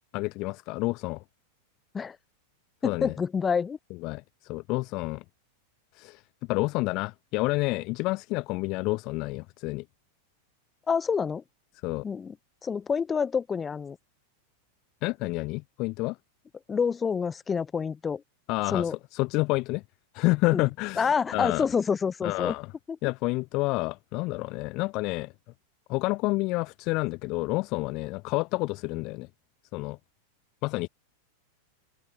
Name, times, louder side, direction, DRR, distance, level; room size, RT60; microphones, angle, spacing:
voice 1, 0.1-1.2 2.8-3.1 4.0-5.2 5.9-6.2 6.5-9.8 11.8-12.0 15.0-16.2 18.5-19.8 20.1-21.6 22.2-22.7 23.0-25.3 25.9-29.3 29.7-30.0 30.6-30.9, left 23 dB, 40° left, 0.6 m, -29 dB
voice 2, 2.8-3.8 10.9-11.4 12.0-12.4 12.6-14.0 16.7-18.2 18.7-18.9 20.5-20.7 21.0-22.6, left 6 dB, 20° left, 3.6 m, -27 dB
open air
figure-of-eight pair, 90°, 0 cm